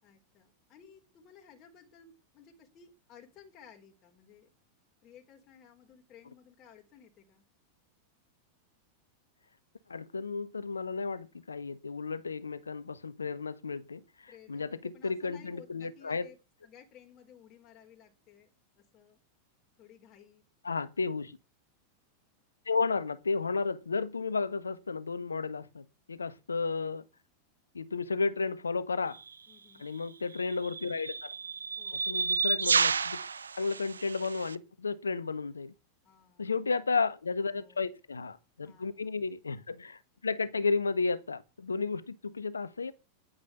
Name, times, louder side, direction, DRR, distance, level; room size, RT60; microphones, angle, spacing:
voice 1, 0.0-4.5 5.0-7.4 14.3-18.5 18.9-19.2 19.8-20.4 21.0-21.1 29.5-29.9 31.8-32.1 36.0-36.7 37.5-37.9 38.6-39.1, left 8 dB, 35° left, 3.8 m, -57 dB
voice 2, 9.9-16.3 20.6-21.3 22.7-27.0 27.7-29.2 29.8-31.3 32.1-33.2 33.6-35.7 36.4-42.9, left 4 dB, 75° left, 1.4 m, -33 dB
sound 1, 29.1-29.3 30.3-34.6, right 5 dB, 75° right, 0.6 m, -31 dB
11.0 x 10.0 x 8.3 m
figure-of-eight pair, 90°, 0 cm